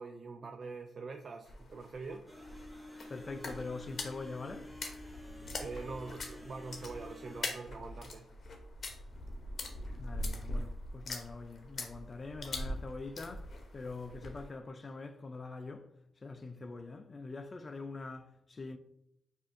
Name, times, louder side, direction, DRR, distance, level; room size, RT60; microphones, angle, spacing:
voice 1, 0.0-2.3 5.6-8.3, right 4 dB, 50° right, 0.3 m, -44 dB
sound 1, 1.4-14.5, left 2 dB, 55° left, 0.7 m, -43 dB
sound 2, 2.3-7.4, left 1 dB, 5° left, 1.0 m, -50 dB
voice 2, 3.1-4.7 10.0-15.9 16.2-18.8, left 3 dB, 40° left, 0.3 m, -44 dB
5.0 x 2.5 x 2.5 m
supercardioid pair, 60°, 0 cm